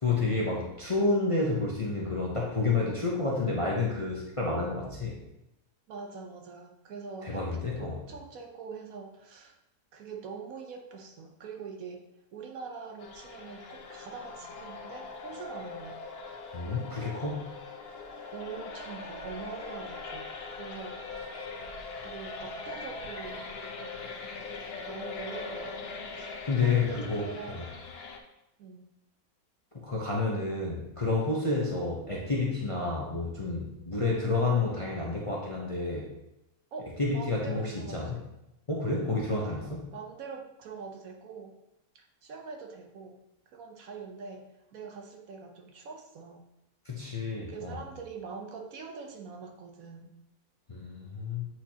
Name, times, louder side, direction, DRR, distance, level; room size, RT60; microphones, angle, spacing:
voice 1, 0.0-5.2 7.2-8.0 16.5-17.4 26.4-27.6 29.7-36.1 37.0-38.2 38.7-39.8 46.8-47.8 50.7-51.5, left 3 dB, 30° left, -3 dB, 0.7 m, -30 dB
voice 2, 5.9-9.6 9.9-12.0 12.3-16.0 18.3-21.0 22.0-23.5 24.9-26.3 26.6-27.6 28.6-28.9 36.7-38.2 39.6-41.6 41.9-46.4 47.5-50.1, right 5 dB, 70° right, 3 dB, 1.2 m, -44 dB
sound 1, 13.0-28.2, left 4 dB, 55° left, 0.7 m, -41 dB
8.1 x 4.4 x 2.8 m, 0.88 s
omnidirectional pair, 1.6 m